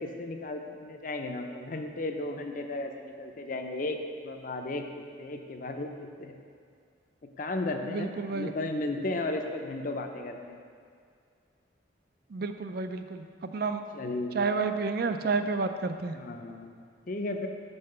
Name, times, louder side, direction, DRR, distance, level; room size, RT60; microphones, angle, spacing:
voice 1, 0.0-4.8 5.2-6.3 7.4-10.6 13.9-14.4 16.1-17.5, left 2 dB, 45° left, 4 dB, 0.6 m, -35 dB
voice 2, 7.8-8.5 12.3-13.8 14.3-16.2, right 4 dB, 55° right, 8 dB, 0.4 m, -30 dB
5.7 x 5.5 x 6.7 m, 2.2 s
head